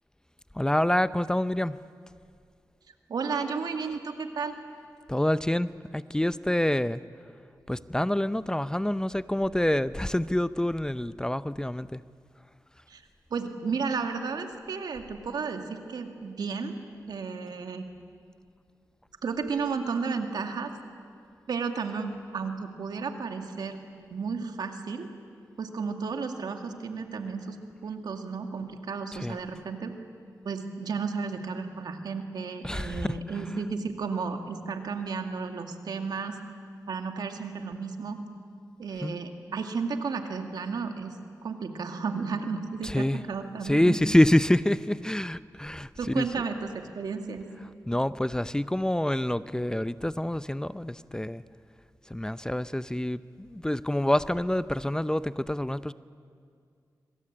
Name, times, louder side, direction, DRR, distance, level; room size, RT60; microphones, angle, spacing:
voice 1, 0.5-1.8 5.1-7.0 7.7-12.0 29.1-29.4 32.6-33.2 39.0-39.2 42.8-43.2 43.6-46.3 47.9-51.4 52.1-55.9, left 1 dB, 10° left, 15 dB, 0.6 m, -27 dB
voice 2, 3.1-4.6 12.9-13.0 13.3-16.7 17.1-17.9 19.2-20.7 21.5-23.8 24.1-25.1 25.6-27.6 27.8-30.0 30.4-36.4 36.9-38.2 38.8-41.1 41.4-44.0 46.0-47.5, right 5 dB, 85° right, 5 dB, 2.2 m, -33 dB
25.5 x 24.0 x 8.8 m, 2.2 s
cardioid pair, 60°, 7 cm